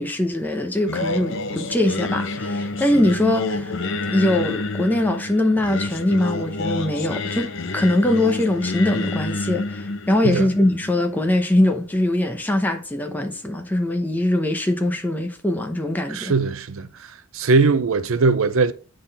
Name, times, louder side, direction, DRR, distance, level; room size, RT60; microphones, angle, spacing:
voice 1, 0.0-3.8 4.1-16.3, left 1 dB, 10° left, 0.7 m, -22 dB
Singing, 0.9-12.0, left 2 dB, 60° left, 0.6 m, -28 dB
voice 2, 16.1-18.7, right 4 dB, 75° right, 0.6 m, -20 dB
8.5 x 3.9 x 4.1 m
head